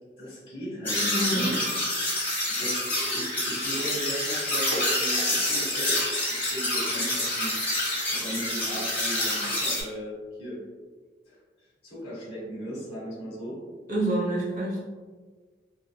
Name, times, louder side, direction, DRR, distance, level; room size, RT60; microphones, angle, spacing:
voice 1, 0.2-1.5 2.5-5.9 6.3-7.6 8.1-10.6 11.2-11.4 11.8-13.6, equal, 30° left, -8 dB, 1.3 m, -36 dB
sound 1, 0.8-9.8, left 1 dB, 10° left, 1.0 m, -27 dB
voice 2, 1.1-1.5 13.9-14.8, right 1 dB, 45° right, -5 dB, 0.9 m, -27 dB
3.3 x 2.8 x 2.2 m, 1.5 s
head